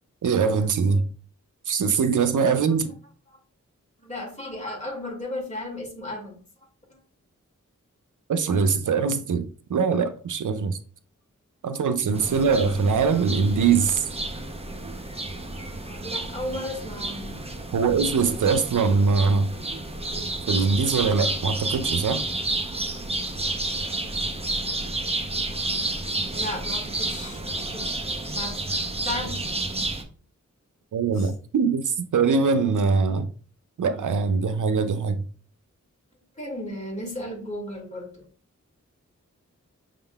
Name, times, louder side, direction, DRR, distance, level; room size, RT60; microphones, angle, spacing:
voice 1, 0.2-1.1 1.7-2.9 8.3-10.8 11.6-14.1 17.7-19.5 20.5-22.2 30.9-33.3 33.8-35.2, right 5 dB, 75° right, 0.5 m, -22 dB
voice 2, 4.0-7.0 12.3-12.6 13.1-13.2 15.4-17.5 26.3-28.0 28.3-28.7 29.0-29.4 31.2-31.3 36.4-38.2, left 1 dB, 25° left, 2.0 m, -35 dB
sound 1, 12.1-30.0, right 2 dB, 20° right, 0.7 m, -30 dB
6.3 x 3.6 x 2.3 m
wide cardioid pair, 85°, 31 cm